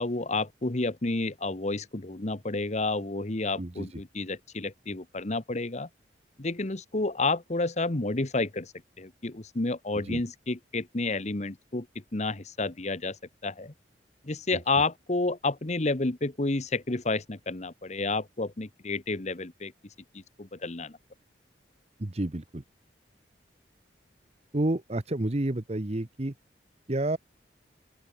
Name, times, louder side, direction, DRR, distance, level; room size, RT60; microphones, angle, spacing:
voice 1, 0.0-5.9 6.4-11.9 12.1-13.2 13.4-13.7 14.2-19.7 20.1-20.9, left 3 dB, 40° left, 1.2 m, -30 dB
voice 2, 3.6-4.0 10.0-10.2 14.5-14.6 22.0-22.6 24.5-26.3 26.9-27.2, right 1 dB, 35° right, 1.0 m, -30 dB
open air
head